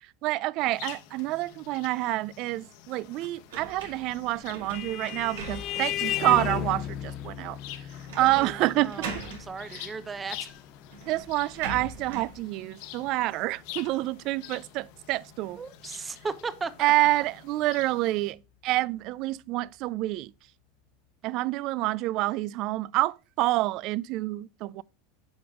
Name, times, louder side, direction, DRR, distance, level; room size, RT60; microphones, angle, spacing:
voice 1, 0.2-7.6 8.1-9.1 9.7-9.9 11.1-15.6 16.8-20.3 21.2-24.8, right 18 dB, 50° right, 0.3 m, -28 dB
sound 1, 0.6-18.3, left 11 dB, 65° left, 1.2 m, -48 dB
sound 2, 3.5-6.1 6.6-6.7 8.1-8.6 8.8-9.5 10.5-10.6 10.9-12.4, right 3 dB, 85° right, 2.1 m, -40 dB
Vehicle horn car horn honking, 4.1-13.1, left 12 dB, 40° left, 0.3 m, -36 dB
voice 2, 8.2-10.5 15.6-17.1, right 4 dB, 15° right, 0.6 m, -37 dB
7.9 x 5.2 x 3.6 m
supercardioid pair, 130°, 0 cm